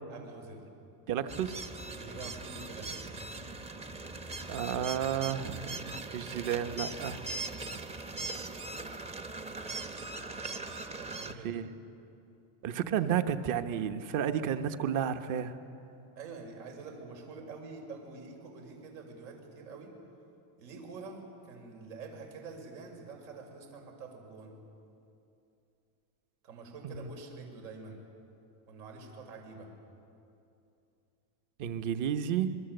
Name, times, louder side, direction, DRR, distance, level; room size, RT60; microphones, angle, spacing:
voice 1, 0.1-0.6 1.9-3.2 10.9-11.5 16.2-19.9 20.6-24.5 26.4-28.0 28.7-29.7, right 4 dB, 80° right, 2 dB, 5.9 m, -46 dB
voice 2, 1.1-1.5 4.5-7.2 11.3-11.7 12.6-15.6 26.8-27.1 31.6-32.6, right 9 dB, 40° right, 9 dB, 1.2 m, -32 dB
sound 1, 1.3-11.3, right 3 dB, 15° right, 0.7 m, -40 dB
26.5 x 22.5 x 8.0 m, 2.7 s
cardioid pair, 155°, 49 cm